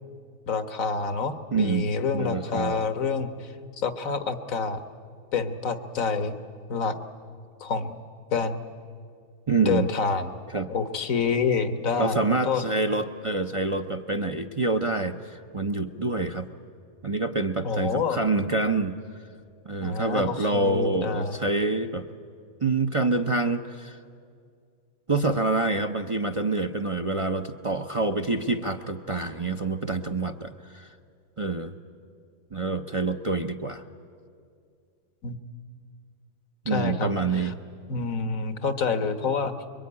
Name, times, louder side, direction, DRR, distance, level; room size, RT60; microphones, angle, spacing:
voice 1, 0.5-4.8 5.3-6.4 6.7-7.0 7.6-8.0 8.3-8.6 9.6-10.3 10.7-12.6 17.6-18.2 19.8-21.4 35.2-35.4 36.7-37.5 37.9-39.5, left 5 dB, 70° left, 10 dB, 1.7 m, -27 dB
voice 2, 1.5-2.9 9.5-9.9 10.5-10.7 12.0-16.5 17.0-18.9 19.6-22.1 22.6-24.0 25.1-30.9 31.4-31.7 32.5-33.8 36.6-37.5, right 3 dB, 30° right, 4 dB, 0.7 m, -27 dB
26.0 x 23.0 x 9.7 m, 2.3 s
omnidirectional pair, 1.5 m